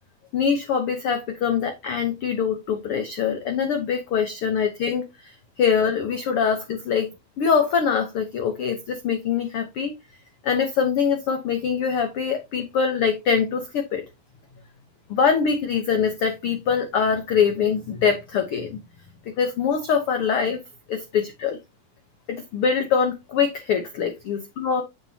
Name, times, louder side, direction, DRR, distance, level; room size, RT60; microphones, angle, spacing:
voice 1, 0.3-7.1 7.4-9.9 10.4-14.0 15.1-18.8 19.4-20.6 20.9-21.6 22.3-24.8, left 6 dB, 60° left, 1.5 m, -23 dB
7.9 x 7.6 x 2.8 m
omnidirectional pair, 3.7 m